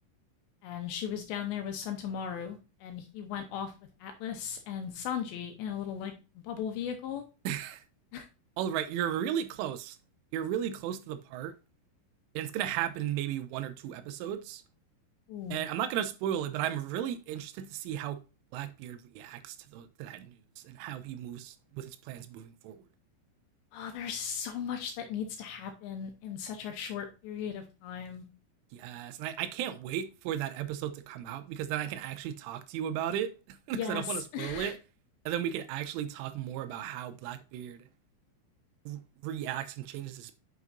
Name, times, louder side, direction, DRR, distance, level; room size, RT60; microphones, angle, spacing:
voice 1, 0.6-3.7 4.0-7.2 8.1-8.3 15.3-15.6 23.7-28.2 33.7-34.7, left 8 dB, 80° left, 2.7 m, -37 dB
voice 2, 7.5-7.8 8.6-10.0 10.3-11.5 12.4-14.6 15.5-18.2 18.5-22.8 28.7-34.8 35.3-37.8 38.9-40.4, right 10 dB, 85° right, 3.1 m, -35 dB
9.3 x 5.9 x 2.6 m
omnidirectional pair, 5.7 m